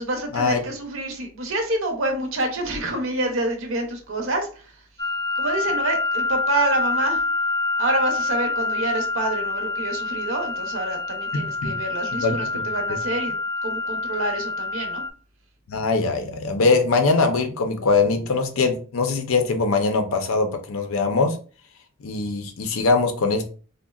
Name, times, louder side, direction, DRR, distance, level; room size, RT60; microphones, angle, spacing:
voice 1, 0.0-4.9 5.3-7.2 7.8-13.3 13.6-15.0, right 2 dB, 70° right, 3 dB, 0.7 m, -27 dB
sound 1, 5.0-15.1, left 3 dB, 20° left, 0.4 m, -26 dB
voice 2, 11.3-11.8 12.2-12.6 15.7-21.4 22.0-23.5, left 3 dB, 80° left, 6 dB, 0.5 m, -22 dB
3.6 x 2.1 x 2.3 m, 0.39 s
head